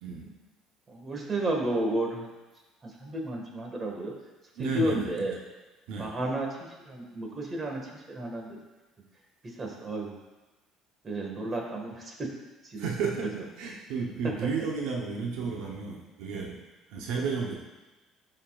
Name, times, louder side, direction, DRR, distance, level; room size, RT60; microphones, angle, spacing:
voice 1, 0.0-0.3 4.5-5.1 5.9-6.2 12.8-16.6 16.9-17.6, right 5 dB, 80° right, -1 dB, 1.0 m, -33 dB
voice 2, 0.9-2.3 2.8-4.1 4.6-5.4 6.0-8.6 9.4-10.1 11.0-12.3 12.6-13.1, right 1 dB, 30° right, 0 dB, 1.8 m, -32 dB
12.0 x 5.6 x 2.5 m, 1.2 s
cardioid pair, 110°, 0 cm